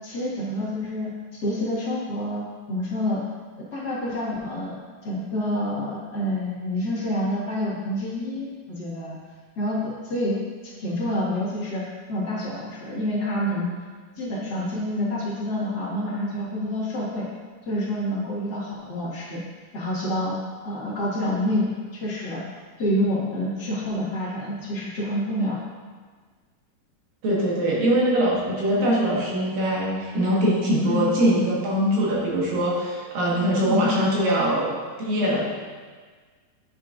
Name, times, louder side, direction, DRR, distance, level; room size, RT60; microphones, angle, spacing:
voice 1, 0.0-1.1 1.4-3.2 3.7-4.8 5.0-9.1 9.5-10.3 10.8-11.8 12.1-13.7 14.2-17.2 17.6-19.4 19.7-20.3 20.6-22.4 22.8-25.6 30.8-31.0 33.6-33.9, left 1 dB, 40° left, -9 dB, 1.5 m, -27 dB
voice 2, 27.2-34.7 35.0-35.4, equal, 70° right, -5 dB, 3.2 m, -22 dB
9.7 x 6.4 x 2.5 m, 1.5 s
omnidirectional pair, 4.2 m